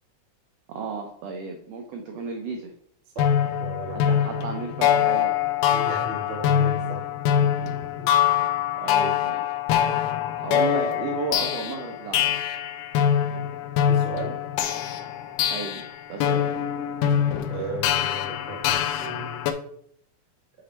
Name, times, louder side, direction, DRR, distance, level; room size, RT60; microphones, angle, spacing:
voice 1, 0.7-2.7 3.9-5.3 8.8-9.5 10.4-12.4 15.5-16.5, right 4 dB, 85° right, 3 dB, 1.4 m, -33 dB
sound 1, 3.2-19.5, left 9 dB, 90° left, 2.2 m, -24 dB
voice 2, 3.6-4.0 5.7-7.1 8.0-8.1 8.9-9.3 13.8-14.4 17.5-19.5, right 1 dB, 65° right, -1 dB, 0.6 m, -36 dB
7.6 x 3.1 x 4.3 m, 0.66 s
omnidirectional pair, 3.7 m